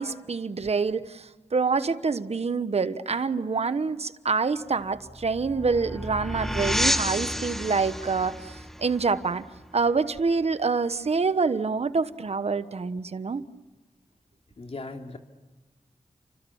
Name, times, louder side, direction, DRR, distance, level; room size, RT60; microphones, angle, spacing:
voice 1, 0.0-9.4 9.7-13.4, right 4 dB, 60° right, 1.1 m, -26 dB
sound 1, 4.8-10.2, equal, 5° left, 1.2 m, -31 dB
voice 2, 14.6-15.2, left 3 dB, 60° left, 2.9 m, -38 dB
30.0 x 26.5 x 7.2 m
wide cardioid pair, 65°, 12 cm